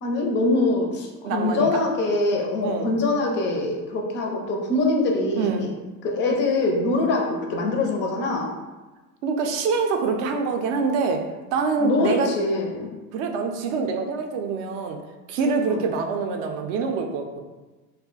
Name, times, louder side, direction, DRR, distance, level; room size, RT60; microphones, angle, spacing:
voice 1, 0.0-5.7 6.0-8.5 11.8-12.9 15.6-15.8, left 2 dB, 25° left, 1 dB, 0.4 m, -24 dB
voice 2, 1.2-1.8 2.6-2.9 5.4-5.7 9.2-11.2 11.5-12.3 13.1-15.0 15.3-17.4, right 4 dB, 50° right, 4 dB, 0.5 m, -25 dB
2.4 x 2.1 x 3.8 m, 1.2 s
hypercardioid pair, 105°, 46 cm